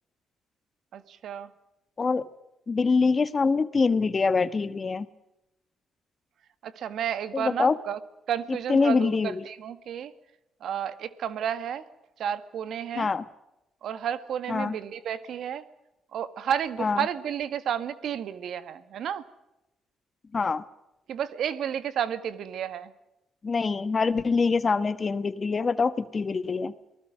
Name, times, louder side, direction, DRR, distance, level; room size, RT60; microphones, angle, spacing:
voice 1, 0.9-1.5 6.6-8.0 8.3-10.1 10.6-11.8 12.2-13.1 13.8-15.6 16.1-19.2 21.1-22.9, right 9 dB, 70° right, 13 dB, 1.7 m, -31 dB
voice 2, 2.7-5.1 7.3-7.8 8.7-9.4 13.0-13.2 14.5-14.8 16.8-17.1 20.3-20.6 23.4-26.7, left 4 dB, 35° left, 13 dB, 1.3 m, -24 dB
27.5 x 19.5 x 6.4 m, 0.91 s
cardioid pair, 90°, 0 cm